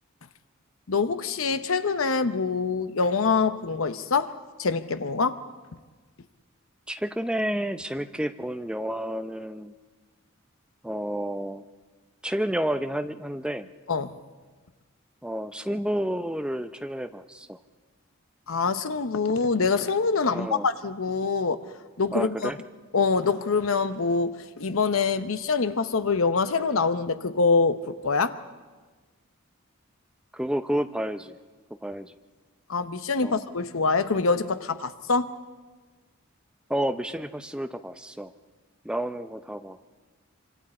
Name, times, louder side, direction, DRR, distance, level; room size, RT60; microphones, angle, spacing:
voice 1, 0.9-4.3 4.6-5.4 13.9-14.2 18.5-21.6 22.0-22.5 22.9-28.4 32.7-35.3, left 4 dB, 75° left, 0.9 m, -25 dB
voice 2, 6.9-9.7 10.8-11.6 12.2-13.7 15.2-17.6 20.3-20.7 22.1-22.6 30.3-31.4 31.8-32.1 33.2-33.4 36.7-38.3 38.8-39.8, right 1 dB, 5° right, 0.6 m, -30 dB
25.5 x 24.5 x 4.3 m
head